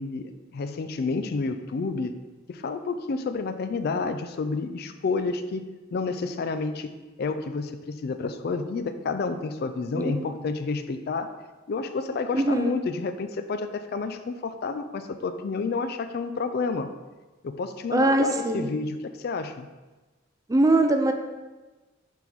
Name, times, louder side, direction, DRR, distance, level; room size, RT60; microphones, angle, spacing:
voice 1, 0.0-2.2 2.5-6.9 7.2-11.3 11.7-16.9 17.4-19.7, left 4 dB, 55° left, 9 dB, 0.4 m, -30 dB
voice 2, 9.9-10.3 12.3-12.8 17.9-18.7 20.5-21.1, right 2 dB, 20° right, 5 dB, 0.4 m, -22 dB
5.9 x 3.6 x 4.5 m, 1.2 s
head